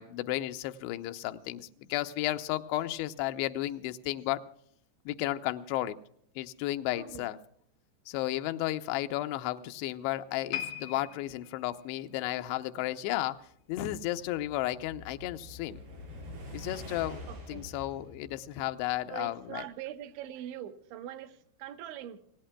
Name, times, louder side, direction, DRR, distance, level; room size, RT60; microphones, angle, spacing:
voice 1, 0.0-4.4 5.1-6.0 6.4-7.4 8.1-13.4 13.7-15.8 16.5-19.6, left 15 dB, 80° left, 8 dB, 2.7 m, -33 dB
voice 2, 7.0-7.3 17.3-17.7 19.1-22.2, right 11 dB, 85° right, 8 dB, 3.2 m, -42 dB
sound 1, 10.5-13.8 14.1-14.4 15.0-15.1, left 10 dB, 50° left, 1.5 m, -42 dB
sound 2, 14.0-19.2, left 1 dB, 60° right, 7.6 m, -46 dB
28.0 x 17.5 x 2.2 m, 0.70 s
omnidirectional pair, 5.0 m